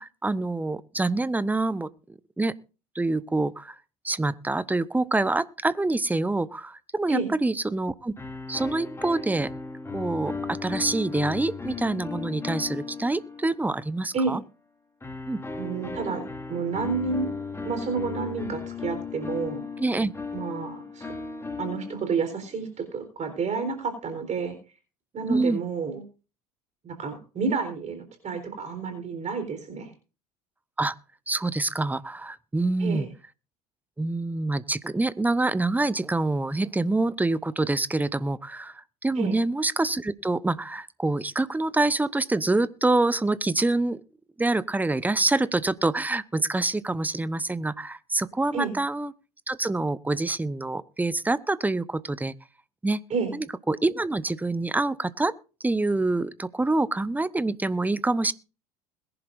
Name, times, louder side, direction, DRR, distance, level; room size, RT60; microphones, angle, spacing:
voice 1, 0.0-1.9 2.4-2.5 2.9-3.8 4.0-8.2 8.5-9.5 9.9-14.4 15.3-15.4 19.8-20.1 25.3-25.6 30.8-30.9 31.3-33.1 34.0-44.0 44.4-49.1 49.5-52.3 52.8-53.0 53.3-55.3 55.6-58.3, right 2 dB, 10° right, 17 dB, 0.8 m, -26 dB
sound 1, 8.2-14.0 15.0-22.4, left 4 dB, 15° left, 2.4 m, -36 dB
voice 2, 15.6-17.3 17.6-19.6 20.3-21.1 21.6-24.5 25.1-26.0 26.8-29.9 32.8-33.1 39.2-39.4 48.5-48.7 53.1-53.4, right 4 dB, 35° right, 8 dB, 4.0 m, -30 dB
21.5 x 11.0 x 2.6 m, 0.34 s
hypercardioid pair, 75°, 20 cm